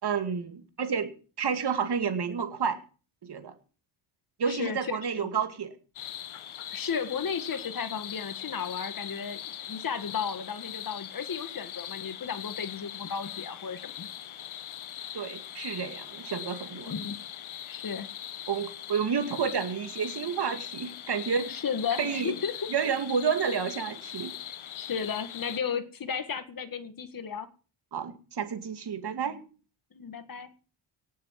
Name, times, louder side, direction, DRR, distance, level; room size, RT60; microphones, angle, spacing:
voice 1, 0.0-2.8 3.3-3.5 4.4-5.7 15.1-16.9 18.5-21.5 22.0-22.3 22.7-24.3 27.9-29.4, right 6 dB, 50° right, 8 dB, 2.4 m, -30 dB
voice 2, 4.5-5.3 6.7-14.1 16.7-17.2 17.7-18.1 21.4-22.7 24.8-27.5 29.9-30.5, left 6 dB, 45° left, 11 dB, 1.8 m, -34 dB
sound 1, 5.9-25.6, left 11 dB, 70° left, 1.4 m, -41 dB
18.0 x 7.7 x 7.5 m, 0.39 s
cardioid pair, 125°, 49 cm